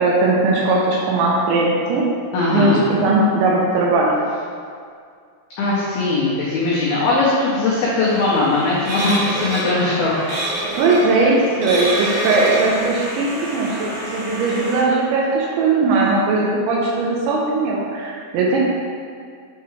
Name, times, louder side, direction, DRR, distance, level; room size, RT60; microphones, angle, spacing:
voice 1, 0.0-2.0 2.5-4.2 10.7-18.6, right 3 dB, 80° right, -3 dB, 2.8 m, -19 dB
voice 2, 2.3-2.8 5.6-10.3, left 3 dB, 90° left, -7 dB, 2.2 m, -19 dB
sound 1, 8.1-14.8, right 1 dB, 60° right, 3.1 m, -27 dB
8.3 x 4.6 x 3.1 m, 2.2 s
omnidirectional pair, 5.8 m